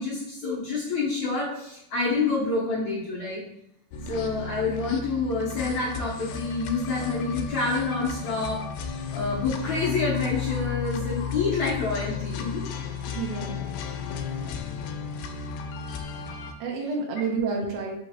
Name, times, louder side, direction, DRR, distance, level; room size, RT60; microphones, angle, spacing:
voice 1, 0.0-3.4 4.1-8.6 9.1-12.7, left 3 dB, 70° left, -9 dB, 1.8 m, -28 dB
sound 1, 3.9-16.5, left 6 dB, 90° left, 2.5 m, -33 dB
voice 2, 13.1-13.7 16.6-17.9, right 4 dB, 75° right, 0 dB, 1.8 m, -29 dB
5.7 x 3.1 x 2.8 m, 0.79 s
omnidirectional pair, 4.4 m